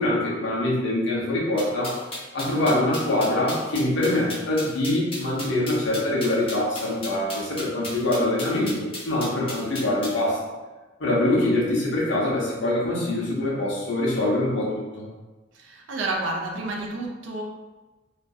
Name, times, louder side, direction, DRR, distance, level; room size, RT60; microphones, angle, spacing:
voice 1, 0.0-1.9 2.3-10.4 11.0-15.0, left 1 dB, 85° left, -5 dB, 0.7 m, -24 dB
sound 1, 1.6-10.2, left 2 dB, 30° left, 0.7 m, -35 dB
voice 2, 15.5-17.4, right 2 dB, 90° right, 0 dB, 0.5 m, -30 dB
2.6 x 2.4 x 2.3 m, 1.2 s
head